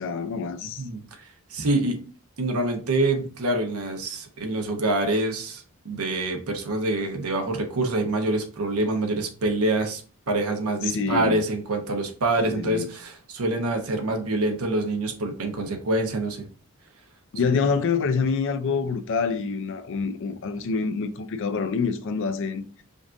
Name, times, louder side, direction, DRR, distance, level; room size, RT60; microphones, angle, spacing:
voice 1, 0.0-0.9 10.8-11.4 12.4-12.9 17.3-22.6, left 5 dB, 60° left, 0.4 m, -26 dB
voice 2, 0.6-2.0 2.4-10.0 10.3-16.5, right 2 dB, 85° right, 0.9 m, -26 dB
5.1 x 2.5 x 2.5 m
head